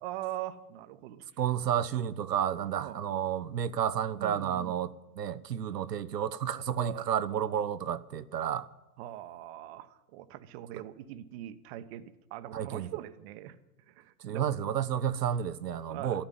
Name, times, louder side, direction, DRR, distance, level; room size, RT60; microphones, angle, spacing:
voice 1, 0.0-1.2 2.8-3.0 4.2-4.8 6.5-7.1 9.0-13.6 14.0-14.5 15.9-16.2, right 13 dB, 40° right, 1.1 m, -42 dB
voice 2, 1.4-8.7 10.7-10.8 12.5-12.9 14.2-16.2, right 9 dB, 80° right, 0.9 m, -31 dB
13.0 x 11.0 x 9.1 m
hypercardioid pair, 120°, 48 cm